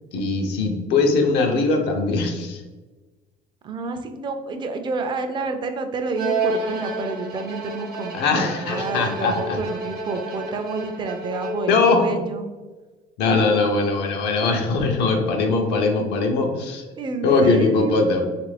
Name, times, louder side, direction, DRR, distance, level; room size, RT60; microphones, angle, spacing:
voice 1, 0.1-2.6 8.1-9.6 11.7-12.2 13.2-16.8 17.2-18.2, left 3 dB, 85° left, 2 dB, 0.5 m, -21 dB
voice 2, 3.6-12.5 16.9-18.2, right 3 dB, 30° right, 6 dB, 0.4 m, -29 dB
Bowed string instrument, 6.1-11.9, right 2 dB, 65° right, 0.8 m, -30 dB
3.0 x 2.5 x 3.2 m, 1.2 s
cardioid pair, 110°, 17 cm